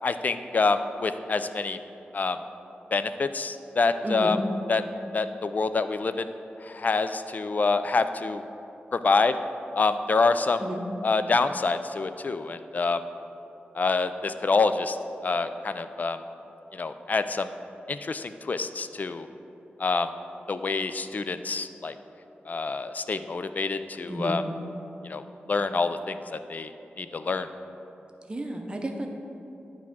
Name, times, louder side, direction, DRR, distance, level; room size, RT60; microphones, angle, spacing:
voice 1, 0.0-1.8 2.1-2.4 2.9-4.4 4.7-4.8 5.1-6.3 6.6-8.4 8.9-9.4 9.7-10.6 11.0-13.0 13.7-15.0 15.2-16.2 16.7-17.5 17.9-19.3 19.8-20.1 20.5-21.9 22.5-24.4 25.0-26.7 27.0-27.5, left 4 dB, 45° left, 10 dB, 0.3 m, -26 dB
voice 2, 4.0-4.4 10.6-10.8 24.1-24.4 28.3-29.1, right 1 dB, 25° right, 3 dB, 0.7 m, -32 dB
9.8 x 3.5 x 5.9 m, 3.0 s
wide cardioid pair, 110°, 4 cm